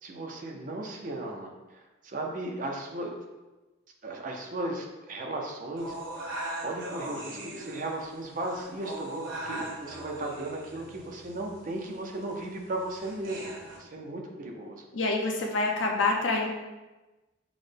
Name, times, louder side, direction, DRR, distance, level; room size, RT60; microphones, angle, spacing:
voice 1, 0.0-3.2 4.0-5.9 6.6-14.8, right 2 dB, 40° right, 1 dB, 0.6 m, -36 dB
sound 1, 5.8-13.8, right 1 dB, 80° right, 0.9 m, -40 dB
voice 2, 14.9-16.5, left 3 dB, 75° left, 1 dB, 0.6 m, -26 dB
6.1 x 2.2 x 3.3 m, 1.1 s
head